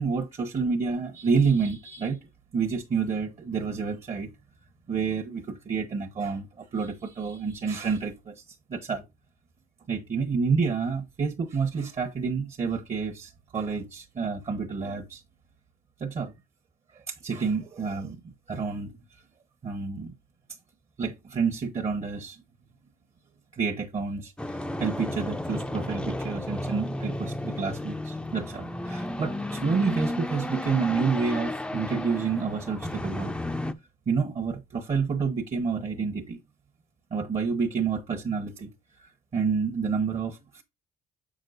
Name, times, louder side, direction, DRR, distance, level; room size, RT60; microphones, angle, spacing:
voice 1, 0.0-2.2 2.5-4.3 4.9-8.4 8.7-9.0 9.9-15.2 16.0-16.3 16.9-18.2 18.5-19.0 19.6-20.1 21.0-22.4 23.5-33.4 34.1-36.4 37.1-38.7 39.0-40.6, right 5 dB, 35° right, 1.1 m, -29 dB
sound 1, 24.4-33.7, left 1 dB, 5° left, 0.6 m, -33 dB
7.4 x 6.2 x 2.5 m
cardioid pair, 110°, 17 cm